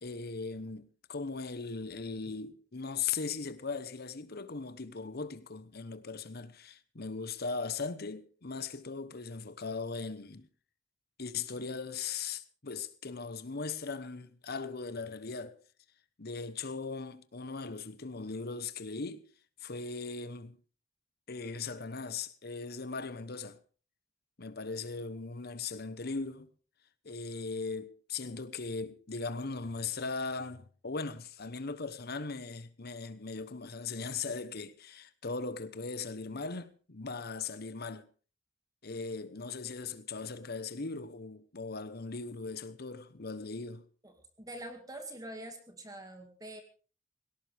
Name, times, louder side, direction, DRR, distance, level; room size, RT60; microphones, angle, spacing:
voice 1, 0.0-10.5 11.2-15.6 16.2-19.3 19.6-20.6 21.3-23.6 24.4-26.5 27.0-38.0 38.8-43.8, left 4 dB, 55° left, 1.0 m, -39 dB
voice 2, 44.0-46.6, right 1 dB, 20° right, 2.2 m, -45 dB
18.0 x 17.5 x 3.5 m
head